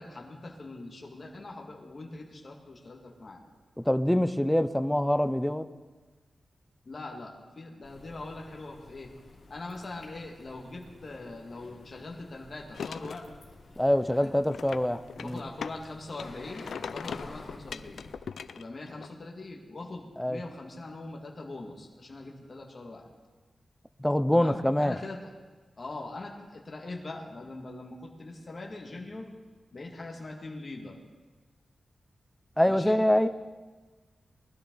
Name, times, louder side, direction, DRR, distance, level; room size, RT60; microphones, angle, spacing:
voice 1, 0.0-3.4 6.9-9.1 9.5-13.2 14.1-14.3 15.2-18.0 18.6-23.1 24.3-25.3 25.8-29.3 29.7-31.0 32.7-33.0, left 2 dB, 40° left, 0 dB, 2.0 m, -42 dB
voice 2, 3.8-5.7 13.8-15.4 20.2-20.4 24.0-25.0 32.6-33.3, left 1 dB, 5° left, 11 dB, 0.5 m, -25 dB
sound 1, 7.8-18.2, left 2 dB, 60° left, 3.1 m, -52 dB
sound 2, 12.7-13.3 14.4-15.9 16.1-19.1, left 6 dB, 90° left, 0.4 m, -40 dB
20.0 x 12.5 x 3.9 m, 1.3 s
wide cardioid pair, 135°, 0 cm